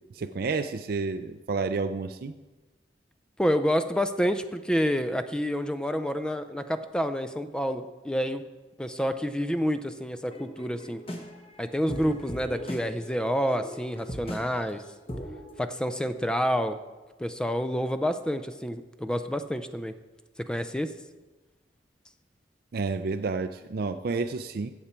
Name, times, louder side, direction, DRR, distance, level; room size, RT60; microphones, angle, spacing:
voice 1, 0.1-2.3 22.7-24.7, right 4 dB, 60° right, 8 dB, 0.4 m, -30 dB
voice 2, 3.4-8.4 8.8-11.0 11.6-14.8 15.6-16.8 17.2-19.9 20.5-20.9, equal, 5° left, 10 dB, 0.4 m, -28 dB
sound 1, 10.2-15.6, equal, 35° left, 1.3 m, -39 dB
15.0 x 7.2 x 4.4 m, 1.2 s
head